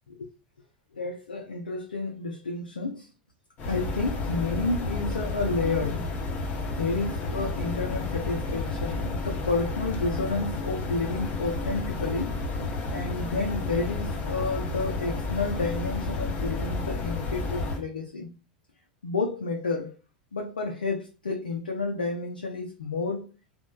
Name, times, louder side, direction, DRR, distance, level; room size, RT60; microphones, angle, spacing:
voice 1, 0.9-3.1 3.7-6.1 6.8-12.3 12.9-18.3 19.0-19.9 20.3-23.3, left 3 dB, 85° left, 0.4 m, -30 dB
sound 1, 3.6-17.8, left 3 dB, 40° left, 0.8 m, -31 dB
3.0 x 2.1 x 2.3 m
figure-of-eight pair, 85°, 5 cm